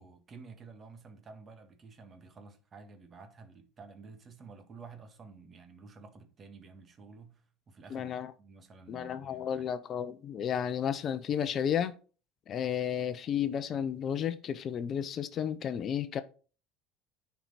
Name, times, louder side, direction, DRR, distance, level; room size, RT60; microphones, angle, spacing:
voice 1, 0.0-9.7, right 4 dB, 35° right, 1.7 m, -52 dB
voice 2, 7.9-8.3 8.9-11.9 12.5-16.2, left 9 dB, 45° left, 0.7 m, -32 dB
10.0 x 4.7 x 4.1 m
supercardioid pair, 100°, 0 cm